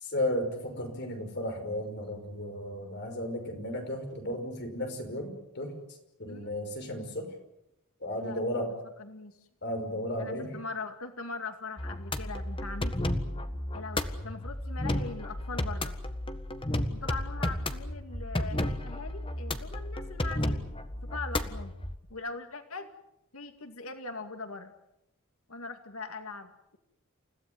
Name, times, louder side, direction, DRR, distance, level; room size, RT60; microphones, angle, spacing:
voice 1, 0.0-5.7 6.2-7.3 8.0-8.7 9.6-10.5, left 1 dB, 50° left, 5 dB, 5.7 m, -34 dB
voice 2, 0.6-1.1 6.3-6.6 7.2-7.3 8.2-8.4 9.0-9.4 10.2-13.1 13.7-16.0 16.9-20.6 21.0-21.7 22.1-22.9 23.3-24.7 25.5-26.8, left 3 dB, 80° left, 7 dB, 2.3 m, -41 dB
sound 1, 11.8-21.9, left 1 dB, 25° left, 1.6 m, -33 dB
29.5 x 16.5 x 9.5 m, 0.84 s
head